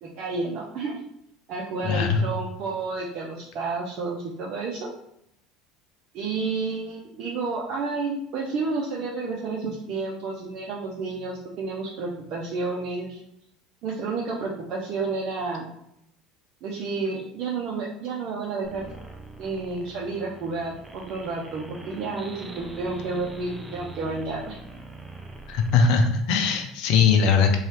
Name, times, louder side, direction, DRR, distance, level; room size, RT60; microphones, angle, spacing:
voice 1, 0.0-1.0 1.5-4.9 6.1-13.2 13.8-15.7 16.6-18.9 19.4-24.6, right 3 dB, 55° right, -4 dB, 0.6 m, -30 dB
voice 2, 1.8-2.3 25.5-27.6, left 5 dB, 65° left, 4 dB, 0.5 m, -20 dB
sound 1, 18.6-25.8, right 2 dB, 10° right, 0.5 m, -43 dB
2.7 x 2.3 x 3.2 m, 0.77 s
hypercardioid pair, 80°, 0 cm